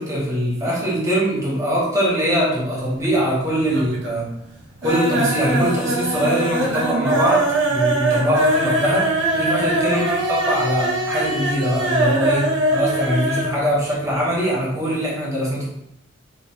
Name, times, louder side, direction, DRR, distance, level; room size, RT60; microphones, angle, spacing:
voice 1, 0.0-4.3 4.8-15.6, equal, 15° right, -6 dB, 1.3 m, -22 dB
sound 1, 2.8-3.4 3.7-4.2 4.5-13.6 13.8-13.9 14.2-14.3, right 2 dB, 70° right, 0.8 m, -22 dB
5.0 x 3.2 x 2.9 m, 0.80 s
head